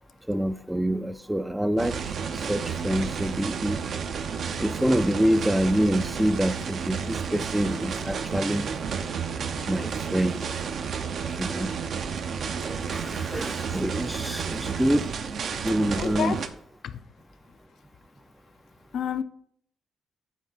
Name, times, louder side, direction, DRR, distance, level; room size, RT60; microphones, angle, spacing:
voice 1, 0.3-2.0 2.3-3.8 4.6-8.8 9.7-10.5 11.3-11.7 12.6-15.1 15.6-16.4, equal, 5° right, 0.3 m, -26 dB
sound 1, 1.8-16.5, right 6 dB, 60° right, 0.6 m, -31 dB
voice 2, 16.0-16.4 16.8-17.0 18.9-19.2, left 8 dB, 65° left, 0.4 m, -32 dB
8.2 x 4.2 x 4.3 m
cardioid pair, 90°, 0 cm